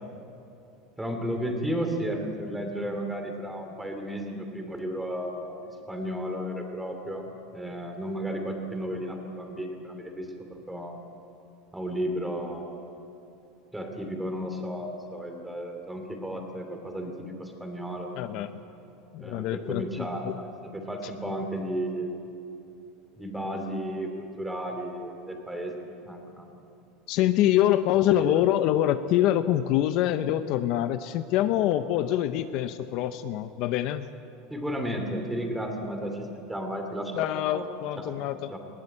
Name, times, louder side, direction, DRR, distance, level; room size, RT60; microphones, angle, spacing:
voice 1, 1.0-7.3 7.5-11.0 11.7-12.8 13.7-18.1 19.2-22.1 23.2-26.5 28.1-28.4 34.5-37.6 38.0-38.1 38.5-38.6, equal, 5° right, 4 dB, 2.8 m, -33 dB
voice 2, 18.2-18.5 19.1-20.3 27.1-34.1 37.1-38.5, left 12 dB, 50° left, 10 dB, 0.8 m, -25 dB
20.5 x 17.0 x 9.9 m, 2.9 s
supercardioid pair, 155°, 0 cm